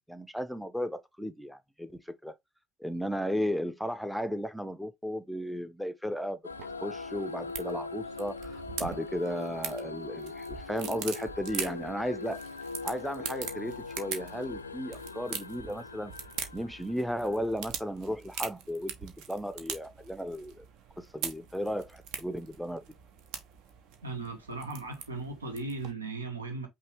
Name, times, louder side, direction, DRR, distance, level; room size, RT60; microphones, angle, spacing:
voice 1, 0.0-2.3 2.8-6.4 6.8-12.4 12.8-16.1 16.5-20.6 21.0-22.8, equal, ahead, 0.6 m, -35 dB
sound 1, 6.4-17.4, left 3 dB, 80° left, 0.3 m, -41 dB
sound 2, 6.5-25.9, right 7 dB, 55° right, 0.9 m, -43 dB
voice 2, 24.0-26.7, right 3 dB, 80° right, 1.1 m, -37 dB
5.5 x 2.8 x 3.3 m
figure-of-eight pair, 60°, 0 cm